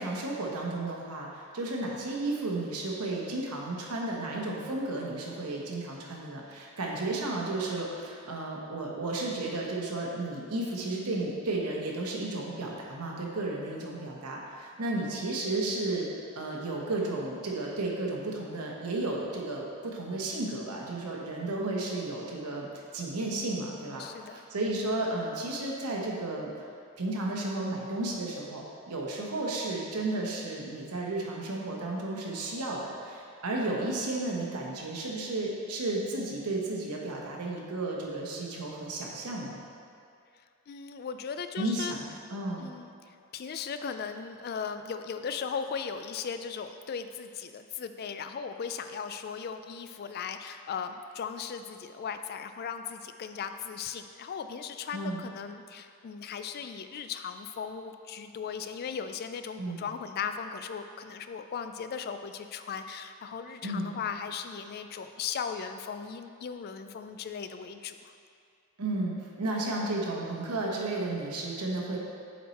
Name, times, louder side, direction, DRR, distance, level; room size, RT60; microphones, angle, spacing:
voice 1, 0.0-16.1 16.3-26.5 27.0-39.6 41.6-42.7 54.9-55.2 59.6-59.8 63.6-63.9 68.8-72.0, right 2 dB, 90° right, -2 dB, 1.0 m, -33 dB
voice 2, 23.6-24.4 40.7-42.0 42.6-68.1, left 6 dB, 45° left, 9 dB, 0.3 m, -37 dB
7.3 x 4.4 x 4.1 m, 2.4 s
head